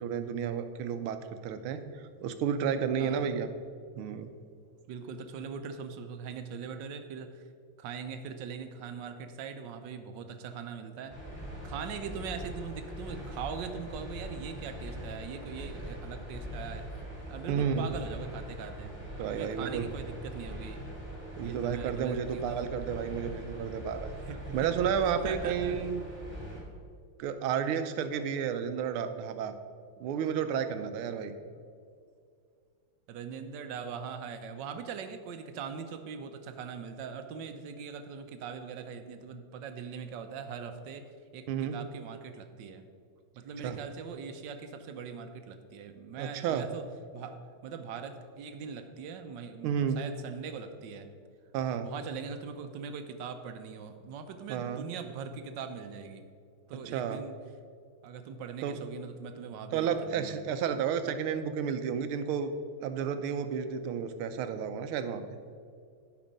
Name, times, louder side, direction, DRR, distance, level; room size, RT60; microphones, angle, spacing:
voice 1, 0.0-3.5 3.9-4.3 17.5-17.9 19.2-19.9 21.4-24.1 24.5-26.0 27.2-29.5 30.0-31.4 41.5-41.8 43.6-43.8 46.2-46.7 49.6-50.0 51.5-51.9 54.5-54.9 56.8-57.2 58.6-58.8 59.7-62.5 62.8-65.4, right 7 dB, 85° right, 10 dB, 1.5 m, -32 dB
voice 2, 3.0-3.3 4.9-7.4 7.8-11.2 11.6-18.9 19.3-20.8 21.4-22.7 24.2-24.7 25.2-25.8 33.1-41.1 41.3-42.9 43.4-46.9 47.1-51.1 51.8-56.3 56.7-57.3 58.0-60.3, right 6 dB, 70° right, 8 dB, 1.2 m, -41 dB
sound 1, 11.1-26.6, equal, 15° left, 2.2 m, -42 dB
11.5 x 5.4 x 5.3 m, 2.3 s
omnidirectional pair, 2.3 m